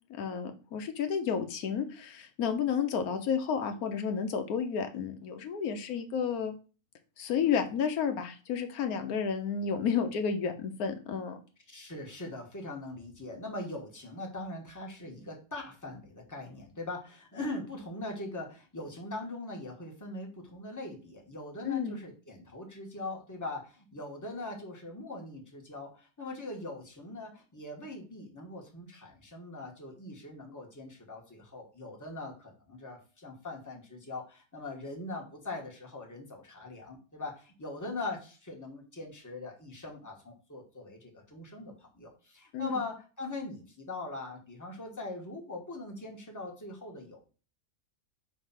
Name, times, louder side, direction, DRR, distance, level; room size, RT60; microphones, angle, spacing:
voice 1, 0.2-6.5 7.2-11.4 21.6-22.0 42.5-42.7, left 7 dB, 80° left, 7 dB, 1.2 m, -31 dB
voice 2, 11.7-47.2, left 2 dB, 15° left, 0 dB, 1.3 m, -41 dB
5.3 x 3.4 x 5.7 m, 0.36 s
omnidirectional pair, 1.6 m